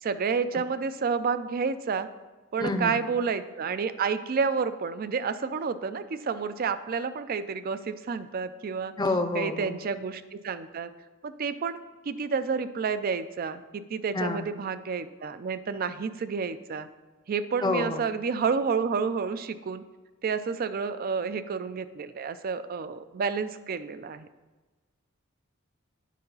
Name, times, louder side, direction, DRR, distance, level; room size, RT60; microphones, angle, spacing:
voice 1, 0.0-2.1 2.5-8.9 9.3-10.9 11.2-11.8 12.1-16.9 17.3-19.8 20.2-24.3, right 5 dB, 45° right, 13 dB, 0.4 m, -30 dB
voice 2, 2.6-3.0 9.0-9.8 14.1-14.5 17.6-18.0, left 2 dB, 20° left, 7 dB, 0.6 m, -28 dB
9.3 x 3.9 x 5.3 m, 1.3 s
head